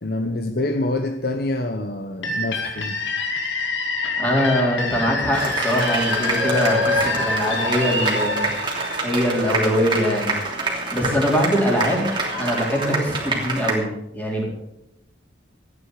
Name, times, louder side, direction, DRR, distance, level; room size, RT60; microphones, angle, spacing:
voice 1, 0.0-3.0, left 2 dB, 55° left, 7 dB, 0.9 m, -26 dB
sound 1, 2.2-9.8, left 3 dB, 80° left, 2.4 m, -27 dB
voice 2, 4.2-8.4 9.0-10.3 10.9-12.1 12.3-13.9 14.1-14.4, equal, 10° left, -2 dB, 4.2 m, -22 dB
sound 2, 5.3-13.7, right 2 dB, 25° right, 3.0 m, -26 dB
14.5 x 9.7 x 6.6 m, 0.84 s
head